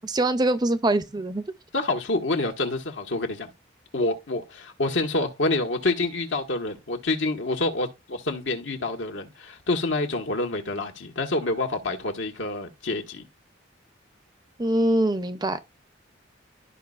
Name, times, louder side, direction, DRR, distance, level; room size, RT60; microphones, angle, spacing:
voice 1, 0.0-1.4 14.6-15.6, right 1 dB, 20° right, 0.5 m, -23 dB
voice 2, 1.7-3.5 3.9-13.2, left 2 dB, 80° left, 1.5 m, -27 dB
12.5 x 5.3 x 2.4 m
head